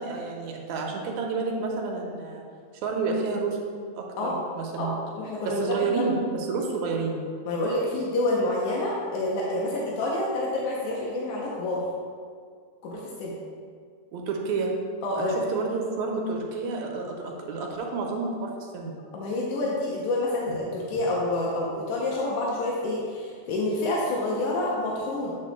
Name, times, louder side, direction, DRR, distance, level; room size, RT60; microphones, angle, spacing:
voice 1, 0.0-2.4 2.7-3.6 4.0-5.0 5.5-7.2 14.1-14.7 15.2-18.9 20.5-20.6, right 4 dB, 80° right, 0 dB, 1.9 m, -30 dB
voice 2, 5.2-6.1 7.5-11.8 12.8-13.3 15.0-15.4 19.1-25.4, left 2 dB, 85° left, -4 dB, 2.2 m, -28 dB
8.6 x 6.7 x 2.2 m, 2.1 s
omnidirectional pair, 3.3 m